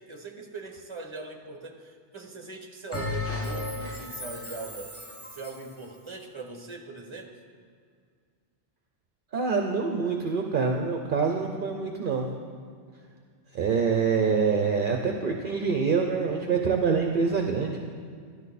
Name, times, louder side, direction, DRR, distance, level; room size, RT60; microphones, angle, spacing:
voice 1, 0.0-4.9 5.3-7.3, right 3 dB, 25° right, 3 dB, 1.1 m, -41 dB
Bell, 2.9-5.7, left 2 dB, 15° left, 1.0 m, -34 dB
voice 2, 9.3-12.3 13.5-17.8, right 5 dB, 55° right, 3 dB, 0.8 m, -25 dB
12.0 x 12.0 x 4.2 m, 2.1 s
omnidirectional pair, 1.1 m